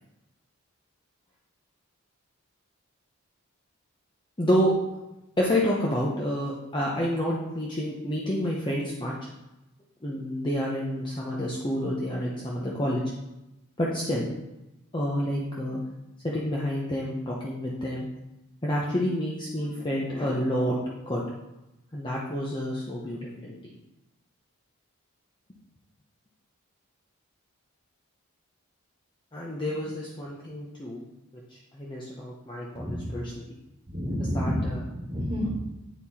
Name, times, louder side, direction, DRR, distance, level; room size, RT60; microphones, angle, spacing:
voice 1, 4.4-4.7 5.4-9.1 10.0-13.0 13.8-14.3 14.9-15.8 16.2-18.1 18.6-20.8 21.1-21.2 21.9-23.7 29.3-31.0 31.5-33.4 34.3-34.8, equal, 20° left, -4 dB, 0.8 m, -29 dB
voice 2, 32.7-33.1 33.9-35.5, equal, 25° right, -5 dB, 1.8 m, -30 dB
9.0 x 4.3 x 4.2 m, 0.97 s
head